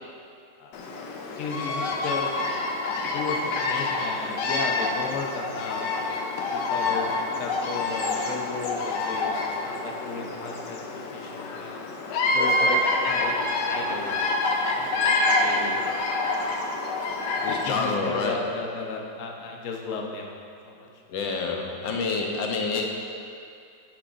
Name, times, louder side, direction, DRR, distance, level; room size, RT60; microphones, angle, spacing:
voice 1, 0.6-2.3 3.1-5.8 6.5-7.1 7.4-11.9 12.3-14.4 14.7-15.8 17.5-20.3 20.6-20.9, left 4 dB, 55° left, 0 dB, 1.1 m, -35 dB
Bird vocalization bird call bird song, 0.7-18.0, left 2 dB, 70° left, 1.3 m, -27 dB
voice 2, 17.4-18.6 21.1-22.8, left 4 dB, 90° left, 1 dB, 1.6 m, -28 dB
9.8 x 9.1 x 2.6 m, 2.4 s
omnidirectional pair, 2.0 m